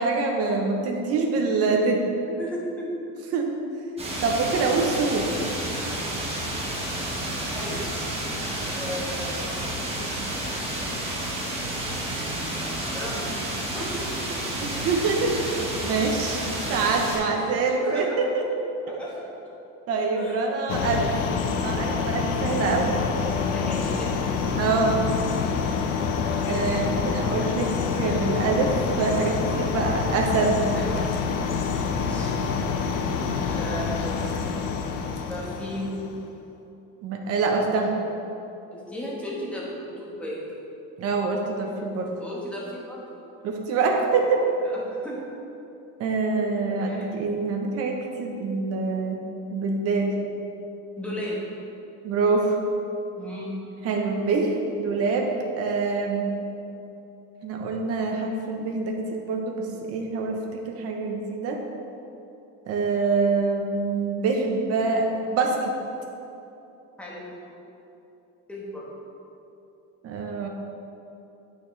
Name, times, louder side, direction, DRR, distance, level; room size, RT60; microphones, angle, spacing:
voice 1, 0.0-2.0 3.3-3.5 4.2-5.4 14.6-15.3 15.8-16.4 16.7-18.4 18.9-19.0 19.9-21.1 21.6-23.0 24.6-25.0 26.5-27.7 27.9-30.6 37.0-37.9 41.0-42.1 43.4-44.4 46.0-49.2 49.5-50.1 52.0-52.6 53.8-56.4 57.4-60.4 60.6-61.6 62.7-65.7 70.0-70.5, right 4 dB, 50° right, 2 dB, 0.9 m, -25 dB
voice 2, 2.4-2.9 7.5-7.8 8.7-9.5 12.9-14.1 17.2-17.5 17.8-18.2 18.9-19.3 20.1-20.4 23.2-24.6 30.7-31.1 31.8-32.3 33.5-34.3 35.3-35.9 38.7-40.4 42.2-43.0 44.6-45.2 46.7-47.1 51.0-51.5 53.2-53.6 67.0-67.4 68.5-68.9, equal, 5° left, -6 dB, 1.2 m, -35 dB
sound 1, 4.0-17.2, right 1 dB, 20° right, 1.1 m, -30 dB
sound 2, 20.7-36.2, left 5 dB, 85° left, 0.7 m, -27 dB
8.7 x 6.1 x 3.2 m, 2.9 s
cardioid pair, 170°, 32 cm